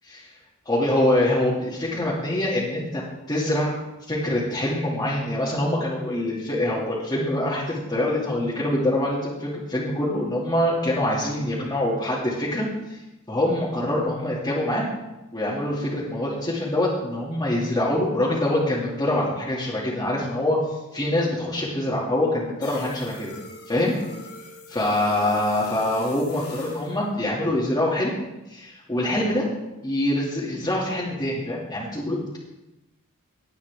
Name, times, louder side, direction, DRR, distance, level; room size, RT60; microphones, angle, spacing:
voice 1, 0.7-3.0 3.3-3.8 4.1-13.0 13.3-14.8 15.3-20.6 20.9-23.3 23.7-23.9 24.7-28.1 28.5-29.4 29.8-32.4, left 1 dB, 20° left, -8 dB, 2.5 m, -24 dB
sound 1, 22.6-27.0, left 2 dB, 85° left, 3.0 m, -43 dB
19.0 x 9.0 x 3.6 m, 0.98 s
head